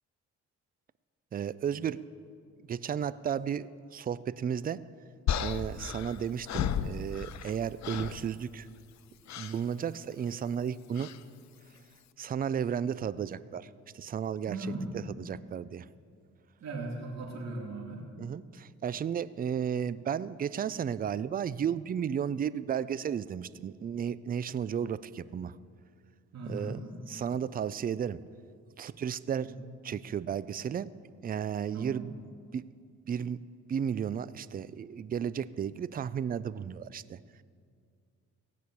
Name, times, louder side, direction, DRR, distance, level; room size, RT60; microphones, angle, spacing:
voice 1, 1.3-2.0 2.7-4.8 5.4-8.7 9.4-11.1 12.2-13.7 13.9-14.6 15.2-15.9 18.2-25.5 26.5-26.8 27.1-28.2 28.8-29.5 29.8-30.9 31.2-32.1 32.5-32.7 33.1-33.4 33.7-37.2, right 8 dB, 30° right, 17 dB, 0.4 m, -33 dB
sound 1, 5.3-7.6 7.8-8.2 9.3-9.6 11.0-11.2, left 9 dB, 65° left, 0.7 m, -33 dB
voice 2, 14.5-14.8 16.6-18.1 26.3-26.8 29.5-29.6 31.7-32.0, right 2 dB, 60° right, -2 dB, 2.8 m, -38 dB
17.0 x 6.2 x 8.4 m, 2.2 s
cardioid pair, 90°, 30 cm